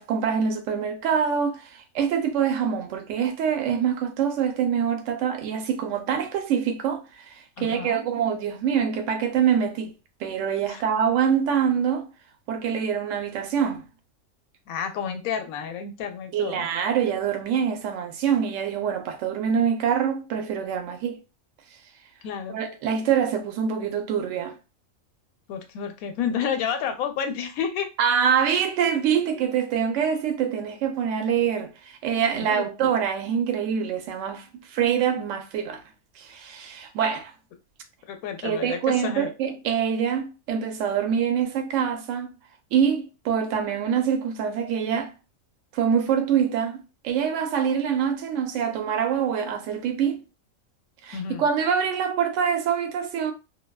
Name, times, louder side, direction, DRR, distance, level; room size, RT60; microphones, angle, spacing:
voice 1, 0.0-9.9 10.2-12.1 12.5-13.9 16.3-21.2 22.5-24.6 28.0-35.8 36.2-37.3 38.4-42.3 42.7-45.1 45.7-50.2 51.0-53.3, right 7 dB, 70° right, 0.9 m, -25 dB
voice 2, 7.6-8.0 10.7-10.8 14.7-16.7 22.2-22.6 25.5-27.9 32.3-32.9 38.1-39.3 51.1-51.5, left 7 dB, 85° left, 1.0 m, -30 dB
2.5 x 2.2 x 2.3 m
omnidirectional pair, 1.4 m